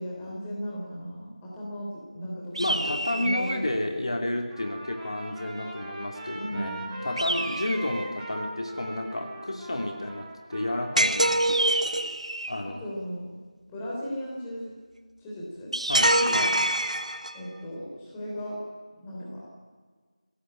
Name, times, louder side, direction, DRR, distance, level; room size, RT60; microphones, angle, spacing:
voice 1, 0.0-3.7 6.3-6.9 12.8-13.3 13.7-14.7 15.2-15.7 16.1-16.6 17.3-18.6 19.0-19.4, equal, 10° left, -5 dB, 3.4 m, -36 dB
sound 1, 2.5-3.7 7.2-8.2 11.4-12.7 15.7-16.9, right 1 dB, 55° right, 2.2 m, -30 dB
voice 2, 2.6-11.4 12.5-12.9 15.9-16.6, left 1 dB, 50° left, 4 dB, 2.6 m, -31 dB
Trumpet, 4.5-11.6, right 1 dB, 10° right, 2.8 m, -40 dB
sound 2, 11.0-12.1 15.9-17.5, right 1 dB, 85° right, 1.7 m, -24 dB
21.5 x 17.0 x 8.9 m, 1.5 s
figure-of-eight pair, 170°, 4 cm